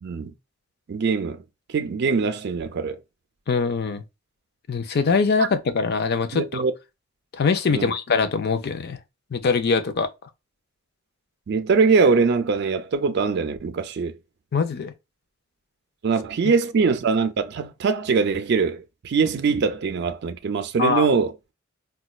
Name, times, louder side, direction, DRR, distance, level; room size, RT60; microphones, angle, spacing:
voice 1, 0.0-0.3 0.9-1.4 1.7-3.0 5.4-5.5 6.3-6.7 7.7-7.9 11.5-14.1 16.0-21.3, right 5 dB, 55° right, 0.4 m, -22 dB
voice 2, 3.5-4.0 4.7-6.6 7.3-9.0 9.3-10.1 14.5-14.9 16.4-16.5 20.8-21.1, left 4 dB, 55° left, 0.5 m, -23 dB
4.1 x 2.2 x 2.3 m
head